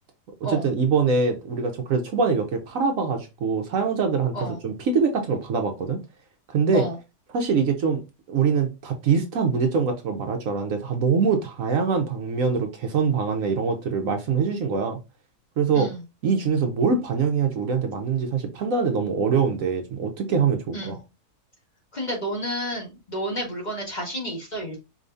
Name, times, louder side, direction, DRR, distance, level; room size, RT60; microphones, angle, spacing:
voice 1, 0.4-6.0 6.5-6.9 7.3-8.0 8.3-15.0 15.6-15.9 16.2-21.0, right 5 dB, 65° right, 1.1 m, -23 dB
voice 2, 21.9-24.8, equal, 30° left, 1.5 m, -31 dB
5.0 x 2.8 x 2.6 m
omnidirectional pair, 1.6 m